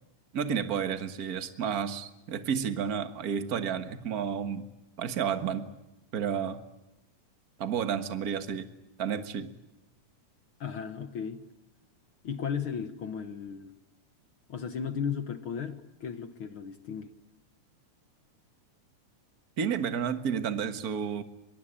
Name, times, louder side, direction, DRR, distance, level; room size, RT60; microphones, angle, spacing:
voice 1, 0.3-4.7 5.0-5.7 6.1-6.6 7.6-8.7 9.0-9.5 19.6-21.2, right 7 dB, 45° right, 9 dB, 1.3 m, -31 dB
voice 2, 10.6-11.4 12.2-13.7 14.5-17.1, left 7 dB, 55° left, 10 dB, 1.5 m, -35 dB
23.5 x 22.5 x 10.0 m, 0.92 s
omnidirectional pair, 3.6 m